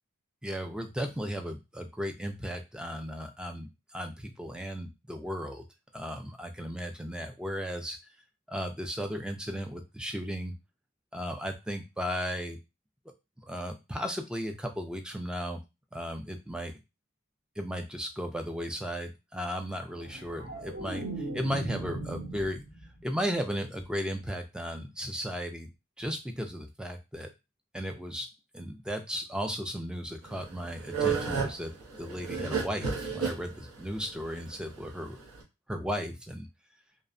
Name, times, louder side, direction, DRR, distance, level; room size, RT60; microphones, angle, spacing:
voice 1, 0.4-5.6 5.9-8.0 8.5-10.5 11.1-12.6 13.4-15.6 15.9-16.7 17.6-22.6 23.0-25.7 26.0-27.3 27.7-28.3 28.5-31.7 32.0-35.2 35.7-36.5, equal, 5° right, 5 dB, 0.3 m, -35 dB
sound 1, 19.9-23.1 23.4-23.8, right 2 dB, 50° right, 1.0 m, -39 dB
sound 2, 30.3-35.4, right 6 dB, 80° right, 0.8 m, -32 dB
2.7 x 2.1 x 2.5 m, 0.25 s
head